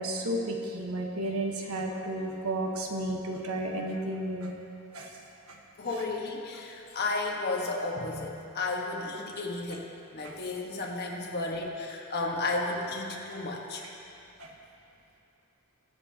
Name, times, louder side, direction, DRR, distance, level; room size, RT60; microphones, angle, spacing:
voice 1, 0.0-4.5 4.9-5.1 5.5-5.6 10.2-10.3 14.4-14.5, right 1 dB, 80° right, 1 dB, 1.2 m, -32 dB
voice 2, 5.8-9.8 10.1-13.8, left 3 dB, 50° left, -1 dB, 1.4 m, -33 dB
22.5 x 7.6 x 2.9 m, 2.7 s
head